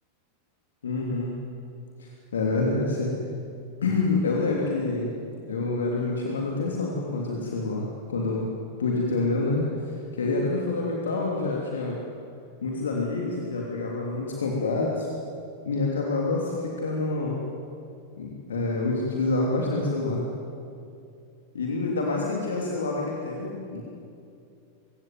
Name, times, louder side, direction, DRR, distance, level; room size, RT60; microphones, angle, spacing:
voice 1, 0.8-1.3 2.0-3.1 3.8-5.1 5.5-8.5 8.8-12.0 12.6-15.1 15.6-17.4 18.2-20.2 21.5-23.8, left 3 dB, 65° left, -1 dB, 3.1 m, -27 dB
23.5 x 16.0 x 9.6 m, 2.5 s
figure-of-eight pair, 90°, 0 cm